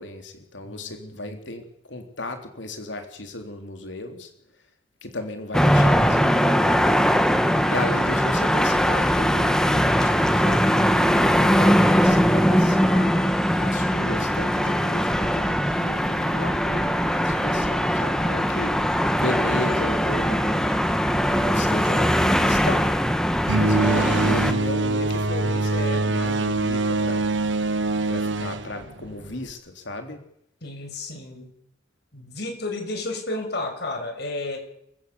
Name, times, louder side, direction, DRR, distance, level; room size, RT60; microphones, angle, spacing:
voice 1, 0.0-4.3 5.0-7.2 7.7-18.8 19.1-20.8 21.4-22.9 23.5-27.2 28.1-30.2, left 2 dB, 80° left, 6 dB, 3.5 m, -34 dB
voice 2, 0.6-1.4 30.6-31.5 32.1-34.6, left 2 dB, 60° left, 4 dB, 6.8 m, -32 dB
sound 1, 5.5-24.5, equal, 5° left, 1.6 m, -21 dB
sound 2, 23.5-29.5, right 2 dB, 90° right, 1.5 m, -24 dB
28.0 x 16.5 x 7.1 m, 0.74 s
head